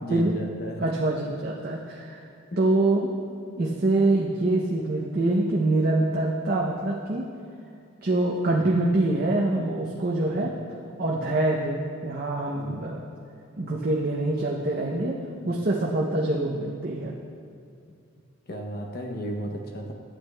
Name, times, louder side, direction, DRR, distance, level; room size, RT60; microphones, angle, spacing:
voice 1, 0.0-0.8 8.5-8.7 12.5-12.8 15.3-15.6 16.4-16.6 18.5-19.9, equal, 45° left, 2 dB, 0.7 m, -35 dB
voice 2, 0.8-2.3 2.6-3.1 3.6-7.3 8.0-10.5 11.0-13.1 13.6-15.1 15.4-17.1, right 2 dB, 45° right, -3 dB, 0.6 m, -25 dB
11.5 x 8.2 x 2.2 m, 2.4 s
head